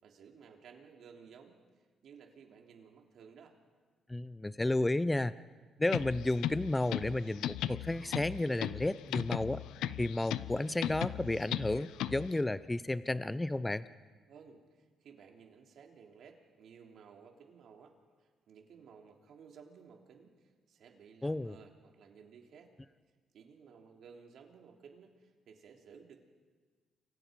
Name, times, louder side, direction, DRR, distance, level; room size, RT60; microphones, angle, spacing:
voice 1, 0.0-1.6 2.0-3.6 14.3-22.7 23.3-26.2, right 6 dB, 70° right, 2 dB, 3.4 m, -56 dB
voice 2, 4.1-5.3 5.8-9.6 10.0-13.9 21.2-21.6, left 2 dB, 15° left, 15 dB, 0.6 m, -32 dB
sound 1, 5.8-12.4, left 12 dB, 90° left, 0.6 m, -38 dB
29.5 x 24.0 x 5.3 m, 1.4 s
cardioid pair, 90°, 0 cm